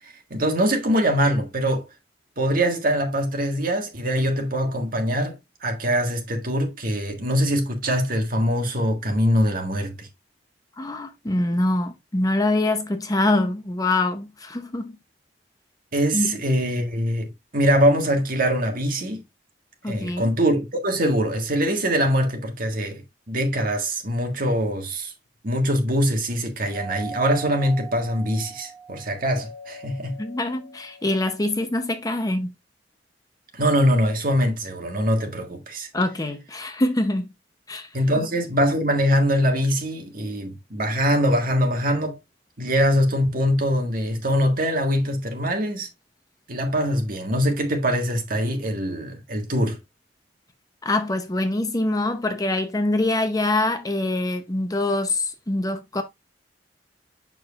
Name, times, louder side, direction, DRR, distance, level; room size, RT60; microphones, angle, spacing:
voice 1, 0.3-1.8 2.4-5.4 5.6-10.1 15.9-17.3 17.5-19.2 19.9-23.0 23.3-25.1 25.4-30.2 33.5-35.9 37.9-42.2 42.6-45.9 46.5-49.8, equal, 50° right, 1.6 m, -23 dB
voice 2, 10.8-15.0 16.1-16.4 19.8-20.3 30.2-32.5 35.9-37.3 37.7-37.9 50.8-56.0, left 2 dB, 20° left, 0.7 m, -24 dB
Doorbell, 26.7-31.5, right 4 dB, 20° right, 3.9 m, -40 dB
6.9 x 6.1 x 2.4 m
head